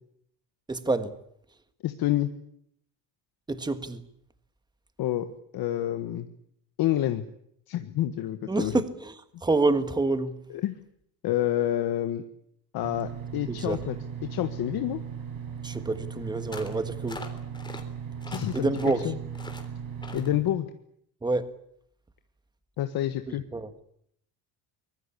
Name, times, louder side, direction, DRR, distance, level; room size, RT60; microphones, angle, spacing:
voice 1, 0.7-1.1 3.5-4.0 8.5-9.1 9.4-10.4 13.5-13.8 15.6-17.3 18.5-19.1 21.2-21.5 23.3-23.7, right 3 dB, 10° right, 1.5 m, -27 dB
voice 2, 1.8-2.3 5.0-5.3 5.5-6.3 6.8-7.2 7.7-8.7 10.5-10.7 11.2-12.2 12.7-14.0 14.3-15.0 18.3-18.7 19.0-19.2 20.1-20.7 22.8-23.4, left 13 dB, 60° left, 1.6 m, -28 dB
sound 1, 12.8-20.4, right 7 dB, 55° right, 6.4 m, -37 dB
sound 2, 16.5-16.8 17.1-17.8 18.2-19.0 19.3-19.7 20.0-20.3, left 2 dB, 10° left, 3.5 m, -42 dB
24.0 x 21.5 x 8.6 m
cardioid pair, 150°, 41 cm